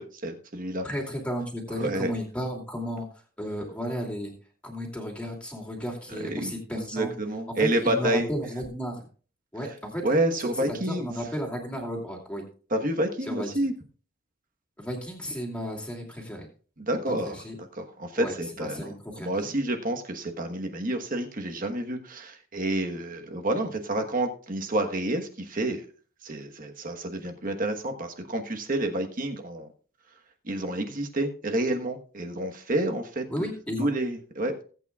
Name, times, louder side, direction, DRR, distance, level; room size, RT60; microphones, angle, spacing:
voice 1, 0.0-0.9 1.8-2.1 6.2-8.3 10.0-11.1 12.7-13.7 16.8-17.4 17.7-25.9 26.2-29.7 30.4-33.5 33.8-34.6, right 1 dB, 40° right, 5 dB, 1.2 m, -29 dB
voice 2, 0.8-3.1 3.4-4.3 4.6-7.1 7.5-9.1 9.5-10.1 10.4-10.5 10.9-12.5 13.3-13.5 14.8-16.5 17.3-17.6 18.2-19.5 33.3-33.9, equal, 5° left, 0 dB, 2.7 m, -33 dB
18.5 x 8.6 x 2.4 m, 0.40 s
head